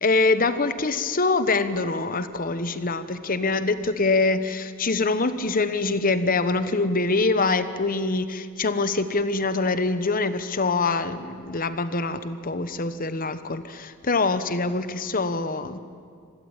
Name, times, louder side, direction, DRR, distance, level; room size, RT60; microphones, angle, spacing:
voice 1, 0.0-15.8, left 3 dB, 40° left, 12 dB, 1.1 m, -24 dB
26.0 x 19.5 x 9.0 m, 2.2 s
head